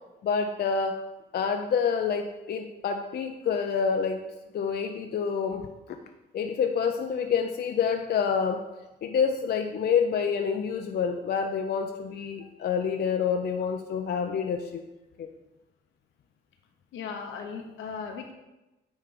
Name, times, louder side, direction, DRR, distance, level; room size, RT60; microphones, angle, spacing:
voice 1, 0.2-1.1 1.3-4.2 4.5-5.6 6.3-8.6 9.0-14.8 15.2-15.3, left 6 dB, 55° left, 5 dB, 0.6 m, -27 dB
voice 2, 16.9-18.3, left 5 dB, 80° left, 3 dB, 1.1 m, -37 dB
9.1 x 3.3 x 5.0 m, 1.0 s
cardioid pair, 90°, 20 cm